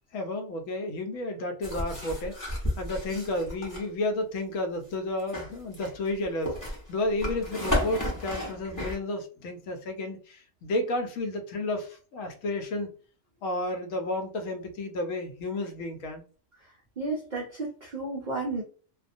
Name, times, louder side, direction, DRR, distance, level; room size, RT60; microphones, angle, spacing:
voice 1, 0.1-12.9 13.4-16.2, left 2 dB, 75° left, 5 dB, 1.0 m, -32 dB
sound 1, 1.6-3.8 5.2-9.0, left 1 dB, 20° left, 0.7 m, -32 dB
voice 2, 16.6-18.6, right 3 dB, 65° right, -2 dB, 0.4 m, -33 dB
2.3 x 2.1 x 2.5 m, 0.39 s
omnidirectional pair, 1.4 m